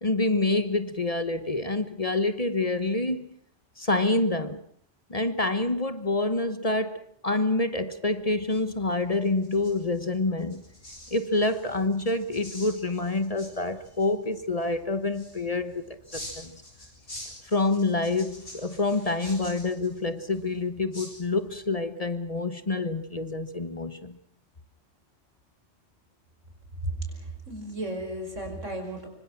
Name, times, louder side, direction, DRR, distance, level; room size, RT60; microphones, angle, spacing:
voice 1, 0.0-3.3 3.8-4.6 5.1-10.6 11.1-16.6 17.4-24.2, left 2 dB, 30° left, 1.2 m, -27 dB
sound 1, 8.1-21.7, left 1 dB, 50° left, 7.7 m, -47 dB
voice 2, 26.8-29.1, right 1 dB, 90° right, 5.8 m, -34 dB
25.0 x 24.5 x 6.0 m
omnidirectional pair, 1.2 m